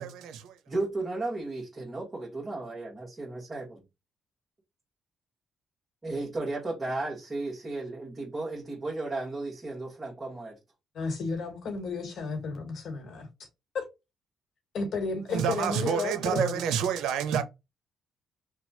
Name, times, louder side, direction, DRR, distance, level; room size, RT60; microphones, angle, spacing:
voice 1, 0.0-0.5 15.3-17.4, right 8 dB, 85° right, 0.5 m, -28 dB
voice 2, 0.7-3.8 6.0-10.6, right 2 dB, 25° right, 1.3 m, -34 dB
voice 3, 10.9-13.5 13.7-13.9 14.7-16.6, left 4 dB, 65° left, 1.3 m, -33 dB
3.0 x 2.2 x 4.0 m
cardioid pair, 90°, 0 cm